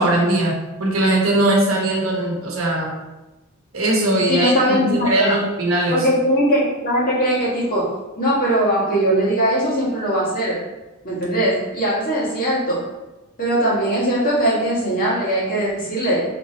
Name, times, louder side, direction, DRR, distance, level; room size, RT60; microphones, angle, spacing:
voice 1, 0.0-2.9 3.7-6.1, right 1 dB, 70° right, -2 dB, 1.0 m, -20 dB
voice 2, 4.3-5.3 5.9-7.9 8.2-10.6 11.0-12.8 13.4-16.2, right 1 dB, 45° left, -7 dB, 1.4 m, -20 dB
3.3 x 2.9 x 4.2 m, 1.1 s
head